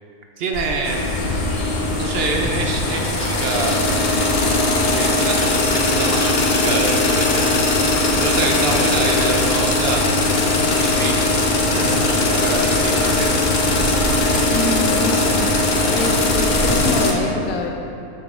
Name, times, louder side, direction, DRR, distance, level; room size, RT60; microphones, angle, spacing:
voice 1, 0.4-1.0 2.0-3.8 4.9-7.5 8.2-10.0 10.8-13.4, right 3 dB, 65° right, 2 dB, 0.6 m, -26 dB
Insect, 0.5-16.8, left 1 dB, 25° left, 1.1 m, -29 dB
sound 1, 0.8-17.1, left 2 dB, 50° left, 0.6 m, -19 dB
voice 2, 14.5-15.6 15.9-17.7, left 2 dB, 75° left, 2 dB, 1.2 m, -25 dB
7.0 x 6.0 x 3.6 m, 2.7 s
omnidirectional pair, 1.6 m